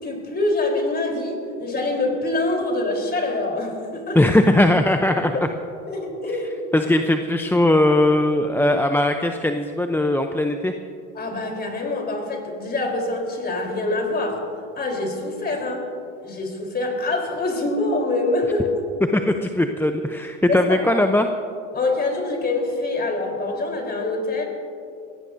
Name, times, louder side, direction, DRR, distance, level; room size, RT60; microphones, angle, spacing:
voice 1, 0.0-4.3 5.9-6.6 11.1-14.5 14.8-15.9 16.2-18.7 20.5-20.9 21.7-24.5, left 2 dB, 25° left, 1 dB, 3.8 m, -25 dB
voice 2, 4.1-5.3 6.7-10.7 19.1-21.3, left 1 dB, 5° left, 6 dB, 0.6 m, -19 dB
22.5 x 17.0 x 2.7 m, 2.5 s
hypercardioid pair, 90°, 36 cm